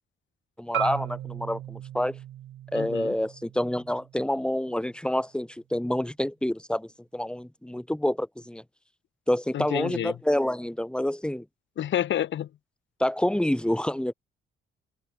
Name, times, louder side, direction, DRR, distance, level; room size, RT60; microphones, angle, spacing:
voice 1, 0.6-2.2 2.7-8.6 9.3-11.4 13.0-14.1, left 1 dB, 5° left, 5.0 m, -28 dB
Marimba xylophone, 0.7-4.9, right 12 dB, 80° right, 7.7 m, -37 dB
voice 2, 2.7-3.1 9.5-10.1 11.8-12.5, left 11 dB, 70° left, 4.1 m, -29 dB
open air
cardioid pair, 90°, 20 cm